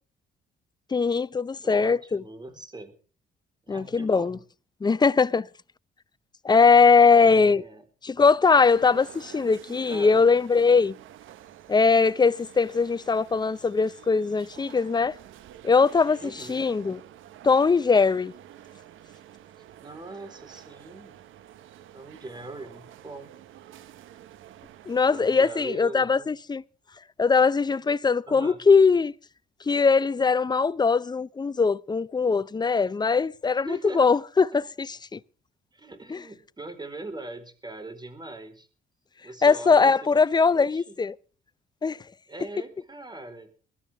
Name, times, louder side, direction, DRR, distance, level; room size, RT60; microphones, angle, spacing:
voice 1, 0.9-2.2 3.7-4.4 4.8-5.5 6.4-7.6 8.0-10.9 11.7-15.2 15.6-17.0 17.4-18.3 24.9-26.6 27.2-29.1 29.7-35.2 36.1-36.2 39.4-41.1 41.8-42.0, left 4 dB, 20° left, 0.6 m, -21 dB
voice 2, 1.6-2.9 3.6-4.4 7.1-7.8 9.9-10.2 16.2-16.7 19.8-21.2 21.9-23.3 25.1-26.3 28.3-28.6 33.6-34.0 35.7-38.7 39.2-40.1 40.4-40.9 42.3-43.5, right 2 dB, 20° right, 4.3 m, -41 dB
sound 1, 8.4-25.5, right 11 dB, 85° right, 1.2 m, -49 dB
22.5 x 12.5 x 3.6 m
cardioid pair, 90°, 20 cm